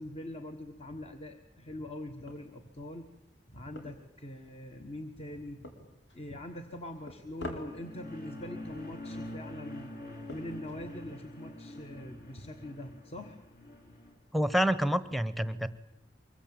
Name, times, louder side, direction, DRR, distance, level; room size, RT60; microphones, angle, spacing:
voice 1, 0.0-3.1 3.5-5.9 6.1-9.9 10.3-13.4, left 1 dB, 35° left, 6 dB, 1.4 m, -43 dB
sound 1, 2.2-11.6, left 2 dB, 80° left, 4.6 m, -50 dB
sound 2, 7.5-14.2, left 1 dB, 55° left, 3.5 m, -45 dB
voice 2, 14.3-15.7, right 1 dB, ahead, 14 dB, 1.0 m, -28 dB
24.5 x 22.5 x 8.9 m, 0.87 s
head